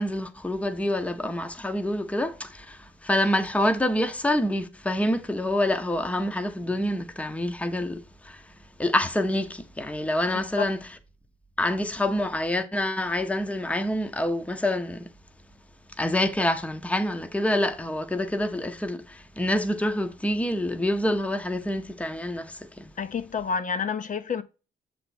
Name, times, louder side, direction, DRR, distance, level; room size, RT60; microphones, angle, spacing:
voice 1, 0.0-8.4 8.8-10.8 11.6-15.1 16.0-22.9, left 1 dB, 5° left, 0.8 m, -27 dB
voice 2, 10.3-10.7 23.0-24.4, left 6 dB, 40° left, 0.6 m, -29 dB
6.8 x 3.4 x 4.2 m
cardioid pair, 90°, 20 cm